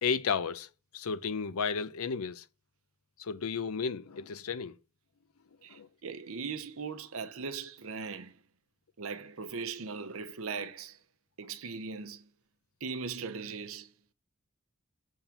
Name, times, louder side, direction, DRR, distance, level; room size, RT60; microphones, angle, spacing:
voice 1, 0.0-0.7 0.9-2.5 3.2-4.8 5.7-5.9, left 6 dB, 80° left, 0.6 m, -33 dB
voice 2, 5.6-8.3 9.0-11.0 11.4-12.3 12.8-13.9, right 5 dB, 75° right, 0.8 m, -39 dB
7.3 x 3.6 x 5.8 m
head